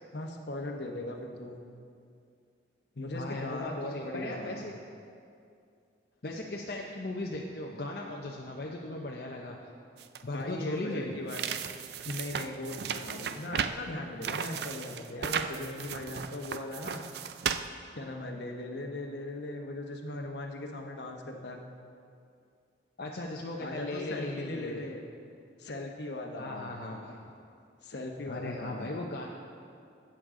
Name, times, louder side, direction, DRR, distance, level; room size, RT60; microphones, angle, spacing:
voice 1, 0.1-1.6 3.0-4.6 10.3-11.5 12.0-17.0 17.9-21.6 23.6-25.1 25.6-26.7 27.8-28.9, left 1 dB, 70° left, 3 dB, 1.0 m, -39 dB
voice 2, 3.1-4.8 6.2-9.6 10.2-11.2 23.0-24.8 26.4-27.2 28.3-29.3, left 2 dB, 55° left, -1 dB, 0.6 m, -37 dB
sound 1, 10.0-10.2 11.3-13.8 14.2-17.7, right 7 dB, 60° right, 0.4 m, -35 dB
12.0 x 8.8 x 3.7 m, 2.4 s
head